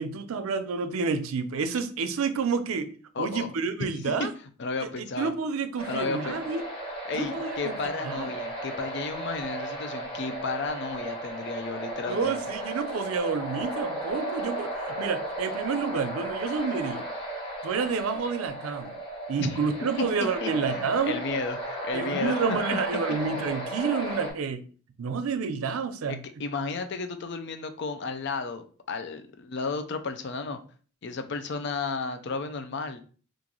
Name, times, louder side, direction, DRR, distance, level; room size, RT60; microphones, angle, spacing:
voice 1, 0.0-2.9 3.2-4.3 5.0-6.6 7.1-7.7 8.0-8.3 12.1-17.1 17.6-19.0 19.3-21.2 21.9-24.6 25.0-26.2, right 5 dB, 85° right, 0.4 m, -29 dB
voice 2, 3.2-3.5 4.2-4.3 4.6-5.3 5.9-6.4 7.0-12.4 19.4-19.6 20.0-20.1 20.4-22.6 26.1-30.6 31.0-33.0, left 4 dB, 55° left, 0.5 m, -33 dB
sound 1, 5.8-24.3, right 1 dB, 25° left, 0.9 m, -34 dB
3.0 x 2.5 x 3.8 m
head